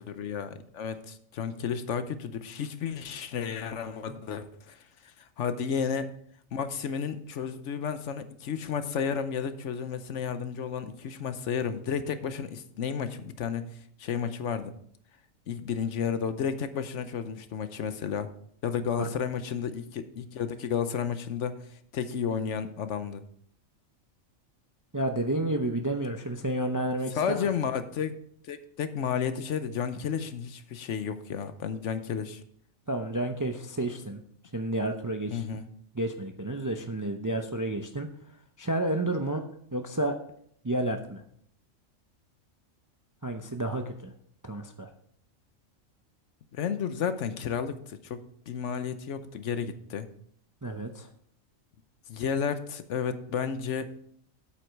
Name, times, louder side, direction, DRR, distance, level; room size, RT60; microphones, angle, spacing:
voice 1, 0.1-6.1 6.5-13.7 14.0-14.7 15.5-18.3 18.6-21.7 21.9-23.2 27.2-28.2 28.4-32.4 35.3-35.7 46.5-50.1 52.1-53.9, left 7 dB, 65° left, 11 dB, 1.0 m, -32 dB
voice 2, 24.9-27.5 32.9-34.2 34.5-35.4 35.9-38.1 38.6-39.4 39.7-40.1 40.6-41.2 43.2-44.1 44.4-44.9 50.6-51.1, right 1 dB, 25° right, 5 dB, 0.4 m, -30 dB
8.5 x 8.1 x 4.6 m, 0.65 s
omnidirectional pair, 1.4 m